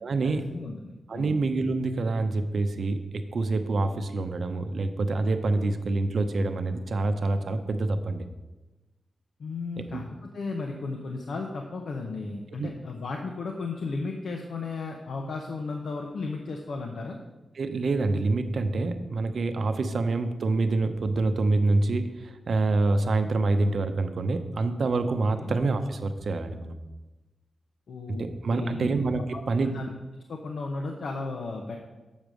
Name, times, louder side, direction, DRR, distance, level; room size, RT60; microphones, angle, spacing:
voice 1, 0.0-0.4 1.1-8.3 9.9-10.0 12.6-12.7 17.6-26.8 28.2-29.8, right 3 dB, 60° right, 8 dB, 0.7 m, -26 dB
voice 2, 0.5-1.4 9.4-10.1 10.3-17.2 25.4-25.5 27.9-28.9 29.3-29.4 29.7-29.9 30.3-31.8, left 3 dB, 70° left, 2 dB, 0.8 m, -34 dB
7.3 x 5.2 x 6.2 m, 1.1 s
wide cardioid pair, 110°, 0 cm